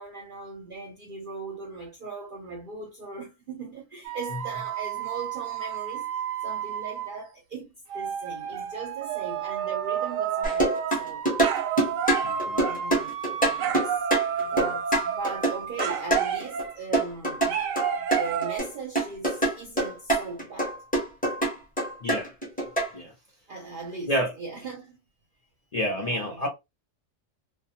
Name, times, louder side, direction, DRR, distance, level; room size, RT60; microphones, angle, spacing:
voice 1, 0.0-6.1 6.4-11.2 12.0-12.3 12.6-13.9 14.4-17.6 17.9-20.8 23.5-25.0 25.9-26.5, right 4 dB, 55° right, 0.6 m, -39 dB
sound 1, 4.0-7.2 7.9-16.9 17.5-18.6, right 8 dB, 85° right, 1.0 m, -30 dB
sound 2, 10.4-16.6 16.9-18.7 18.9-22.9, right 1 dB, 10° left, 0.6 m, -25 dB
voice 2, 12.2-12.6 22.0-22.3 22.9-23.1 24.1-24.3 25.7-26.5, equal, 60° left, 0.4 m, -28 dB
2.2 x 2.1 x 2.7 m
omnidirectional pair, 1.3 m